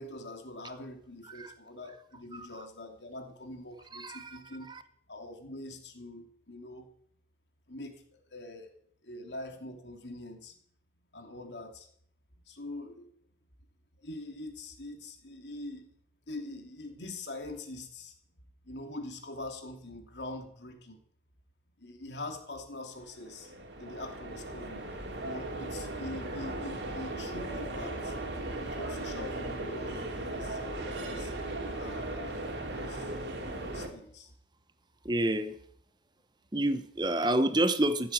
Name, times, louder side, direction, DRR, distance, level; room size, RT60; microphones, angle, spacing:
voice 1, 0.0-4.7 5.1-6.9 7.7-8.0 8.3-10.6 11.1-11.9 12.5-13.1 14.0-15.9 16.3-18.1 18.6-21.0 21.8-23.5 23.8-24.8 25.2-28.2 28.5-31.3 31.7-33.1 33.6-34.3, left 2 dB, 85° left, 4 dB, 2.9 m, -44 dB
voice 2, 3.9-4.4 4.7-4.8 35.0-35.6 36.5-38.1, right 1 dB, 25° right, 11 dB, 0.9 m, -28 dB
sound 1, 23.0-33.9, right 2 dB, 85° right, 3.0 m, -37 dB
15.5 x 8.0 x 8.4 m, 0.63 s
head